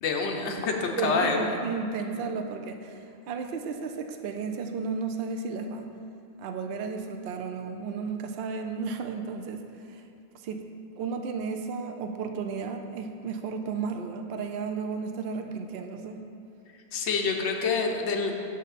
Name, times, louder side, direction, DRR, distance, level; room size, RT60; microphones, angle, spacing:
voice 1, 0.0-1.6 16.9-18.4, left 4 dB, 70° left, 2 dB, 1.0 m, -27 dB
voice 2, 1.0-5.9 6.4-9.6 9.9-10.0 10.4-10.6 11.0-16.2, right 5 dB, 65° right, 4 dB, 0.7 m, -33 dB
6.6 x 6.3 x 4.1 m, 2.6 s
omnidirectional pair, 1.2 m